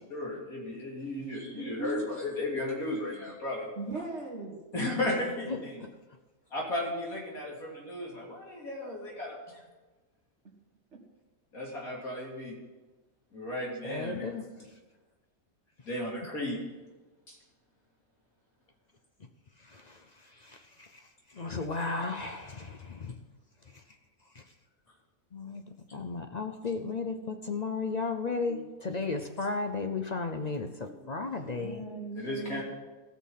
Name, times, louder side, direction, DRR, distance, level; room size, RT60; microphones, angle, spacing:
voice 1, 0.1-3.7 4.7-5.8 6.5-9.6 11.5-12.5 13.3-14.3 15.9-16.6 17.3-17.4 32.2-32.6, left 1 dB, 70° left, -4 dB, 3.7 m, -35 dB
voice 2, 1.5-2.1 3.8-4.6 28.5-28.7 30.8-31.1 31.5-32.6, right 3 dB, 50° right, -1 dB, 2.2 m, -39 dB
voice 3, 5.5-5.9 13.8-14.4 19.6-23.2 23.7-23.8 24.3-24.5 25.3-25.6 25.9-31.8, left 4 dB, 45° left, 6 dB, 0.5 m, -35 dB
16.5 x 6.3 x 5.7 m, 1.2 s
omnidirectional pair, 1.5 m